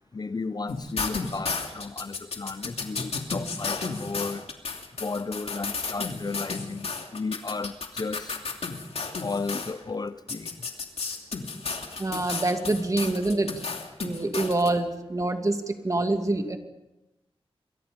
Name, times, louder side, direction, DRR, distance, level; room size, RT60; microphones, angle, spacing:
voice 1, 0.1-4.5 5.0-8.3 9.2-10.8, left 4 dB, 40° left, 0.8 m, -34 dB
sound 1, 0.7-9.7 10.3-14.7, left 4 dB, 85° left, 2.8 m, -33 dB
voice 2, 12.0-13.6 14.0-16.6, right 2 dB, 35° right, 2.5 m, -26 dB
28.5 x 22.5 x 5.3 m
wide cardioid pair, 95°, 10 cm